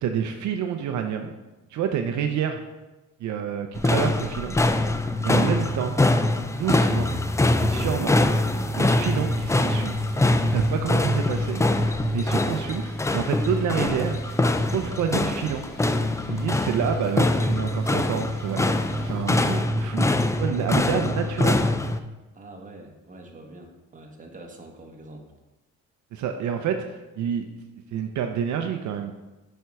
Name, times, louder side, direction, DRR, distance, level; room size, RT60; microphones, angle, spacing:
voice 1, 0.0-1.3 1.7-2.6 3.2-4.5 5.2-6.0 6.6-7.1 7.6-8.2 8.8-10.0 10.5-11.6 12.1-12.8 13.1-14.2 14.7-15.7 16.3-20.1 20.4-21.6 26.1-27.4 27.9-29.1, right 8 dB, 70° right, 5 dB, 0.6 m, -28 dB
sound 1, 3.7-22.0, left 2 dB, 10° left, 0.4 m, -23 dB
sound 2, 8.6-19.5, left 2 dB, 35° left, 2.1 m, -48 dB
voice 2, 22.3-25.3, right 2 dB, 25° right, 2 dB, 1.3 m, -45 dB
6.8 x 4.5 x 4.7 m, 1.1 s
cardioid pair, 90°, 30 cm